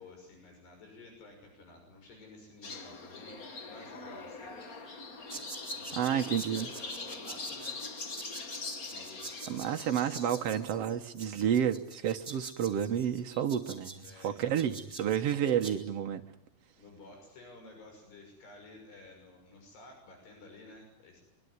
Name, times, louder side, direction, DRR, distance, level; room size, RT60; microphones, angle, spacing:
voice 1, 0.0-3.4 3.7-4.5 5.7-7.8 8.9-9.4 14.0-14.7 16.8-21.2, left 2 dB, 90° left, 3 dB, 8.3 m, -52 dB
sound 1, 2.6-10.6, left 3 dB, 50° left, 1.0 m, -42 dB
sound 2, 5.3-15.7, right 3 dB, 15° right, 3.6 m, -47 dB
voice 2, 5.9-6.7 9.5-16.2, right 9 dB, 60° right, 6 dB, 1.6 m, -30 dB
24.0 x 23.5 x 9.6 m, 0.76 s
omnidirectional pair, 4.6 m